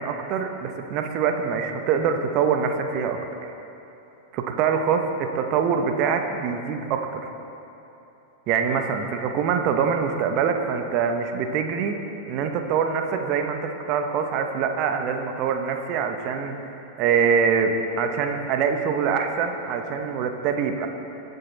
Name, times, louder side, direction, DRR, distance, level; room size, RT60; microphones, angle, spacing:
voice 1, 0.0-3.5 4.3-7.2 8.5-12.0 12.3-16.6 17.0-20.9, right 6 dB, 40° right, 5 dB, 1.2 m, -24 dB
22.0 x 8.1 x 4.1 m, 3.0 s
figure-of-eight pair, 90°, 0 cm